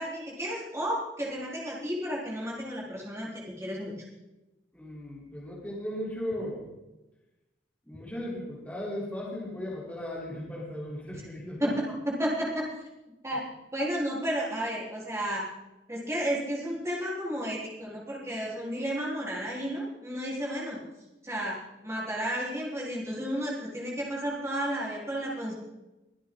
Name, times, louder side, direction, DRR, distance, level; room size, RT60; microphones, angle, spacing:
voice 1, 0.0-3.9 11.6-12.7 13.2-13.4 13.7-15.4 15.9-20.8 21.2-21.6 21.8-25.5, equal, 15° right, -5 dB, 4.3 m, -32 dB
voice 2, 4.7-6.7 7.9-11.7, left 1 dB, 10° left, -6 dB, 4.0 m, -36 dB
24.0 x 8.6 x 4.0 m, 1.0 s
head